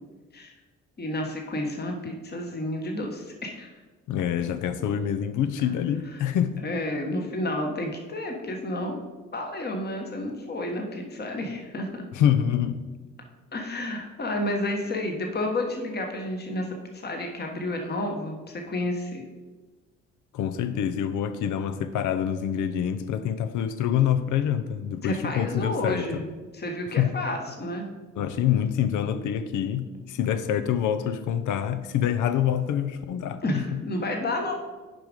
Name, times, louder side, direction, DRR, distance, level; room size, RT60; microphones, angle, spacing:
voice 1, 1.0-3.7 6.1-6.2 6.6-9.0 9.3-12.0 13.5-19.2 25.0-26.3 26.5-27.9 33.4-34.5, left 1 dB, 35° left, 2 dB, 1.2 m, -31 dB
voice 2, 4.1-6.6 12.1-12.8 20.3-26.2 27.0-27.2 28.2-33.8, left 9 dB, 85° left, 11 dB, 0.6 m, -26 dB
6.9 x 5.0 x 5.1 m, 1.3 s
cardioid pair, 90°, 30 cm